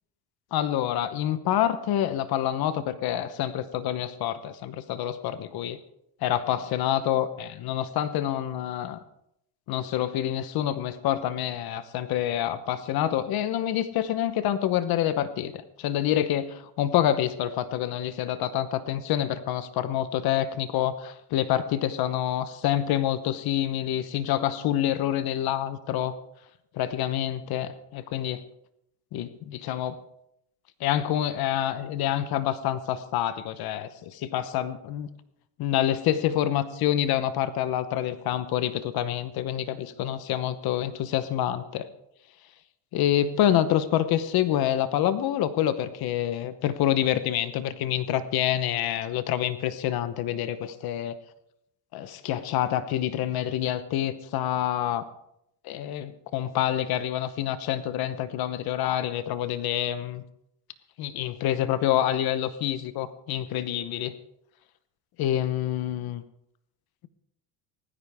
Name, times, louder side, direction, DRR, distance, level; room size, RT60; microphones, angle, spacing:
voice 1, 0.5-5.8 6.2-9.0 9.7-26.1 26.7-28.4 29.1-30.0 30.8-35.1 35.6-41.9 42.9-51.2 51.9-55.0 55.6-60.2 61.0-64.1 65.2-66.2, left 11 dB, 55° left, 13 dB, 1.0 m, -27 dB
18.5 x 15.0 x 3.5 m, 0.79 s
cardioid pair, 160°, 43 cm